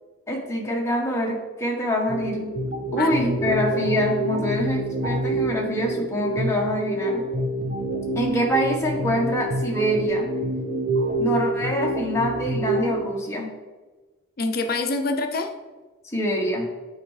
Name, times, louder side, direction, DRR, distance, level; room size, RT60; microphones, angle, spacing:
voice 1, 0.3-2.5 2.9-7.2 8.1-10.3 11.2-13.5 16.0-16.7, equal, 15° left, -1 dB, 1.0 m, -25 dB
sound 1, 2.1-13.1, right 1 dB, 45° right, 0.6 m, -27 dB
voice 2, 2.7-3.6 14.4-15.5, left 3 dB, 50° left, 5 dB, 0.5 m, -27 dB
8.3 x 4.3 x 3.2 m, 1.3 s
head